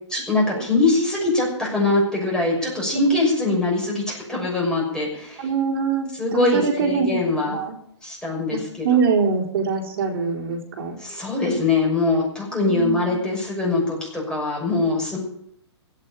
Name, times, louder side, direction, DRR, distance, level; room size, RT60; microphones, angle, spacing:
voice 1, 0.1-5.5 6.2-7.6 8.0-8.9 11.0-15.2, left 2 dB, 5° left, -3 dB, 6.2 m, -22 dB
voice 2, 5.4-7.2 7.5-7.7 8.5-11.0 12.7-13.2, right 5 dB, 55° right, -2 dB, 4.2 m, -23 dB
16.5 x 7.4 x 9.8 m, 0.69 s
hypercardioid pair, 140°, 15 cm